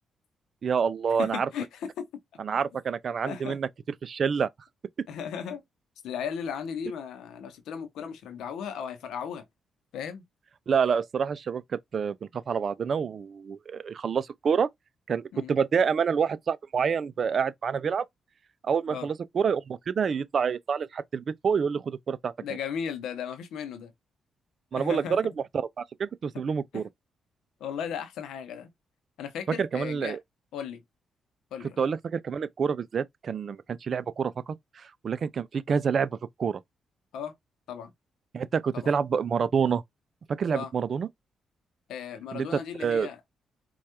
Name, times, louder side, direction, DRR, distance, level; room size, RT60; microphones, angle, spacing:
voice 1, 0.6-1.5 2.4-3.7 4.0-4.5 10.7-14.7 15.1-18.1 18.6-22.3 24.7-26.8 29.6-30.2 31.8-36.1 36.4-36.6 38.3-39.8 40.4-41.1 42.3-43.1, right 6 dB, 55° right, 0.4 m, -27 dB
voice 2, 1.2-2.1 3.3-3.6 5.1-5.6 6.0-9.4 9.9-10.2 15.3-15.5 18.9-19.1 22.4-23.9 24.7-25.3 26.7-26.8 27.6-28.7 29.2-30.2 30.5-30.8 31.5-31.8 37.1-37.3 37.7-37.9 38.7-38.9 40.5-40.7 41.9-43.2, left 7 dB, 85° left, 0.7 m, -36 dB
4.4 x 2.3 x 2.8 m
cardioid pair, 70°, 0 cm